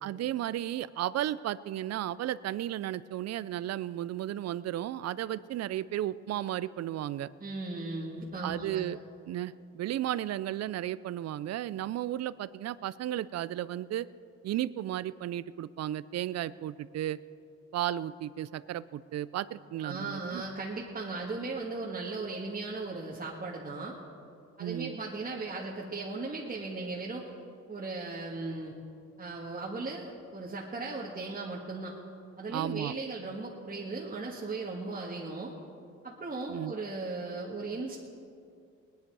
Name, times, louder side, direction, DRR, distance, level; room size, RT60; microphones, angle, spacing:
voice 1, 0.0-7.3 8.4-9.0 9.3-14.1 14.4-17.2 17.7-20.4 24.6-25.0 32.5-32.9 36.5-36.7, right 12 dB, 60° right, 18 dB, 0.5 m, -34 dB
voice 2, 7.4-8.8 19.8-24.0 24.6-27.3 27.7-28.7 29.2-32.0 32.4-35.5 36.0-38.0, right 3 dB, 30° right, -4 dB, 1.6 m, -37 dB
19.5 x 10.5 x 4.7 m, 2.4 s
cardioid pair, 90°, 30 cm